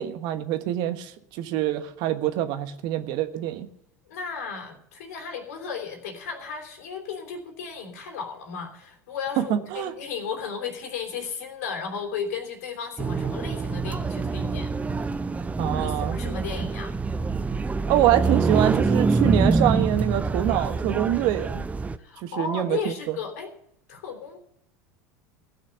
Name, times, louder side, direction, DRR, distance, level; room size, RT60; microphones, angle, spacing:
voice 1, 0.0-3.7 9.4-9.9 15.6-16.2 17.9-21.6 22.2-23.1, right 12 dB, 55° right, 10 dB, 1.2 m, -25 dB
voice 2, 4.1-14.7 15.8-16.9 22.0-23.5 23.9-24.4, left 6 dB, 70° left, 4 dB, 3.2 m, -34 dB
sound 1, 13.0-22.0, right 4 dB, 15° right, 0.7 m, -25 dB
16.5 x 6.5 x 7.9 m, 0.72 s
hypercardioid pair, 80°, 9 cm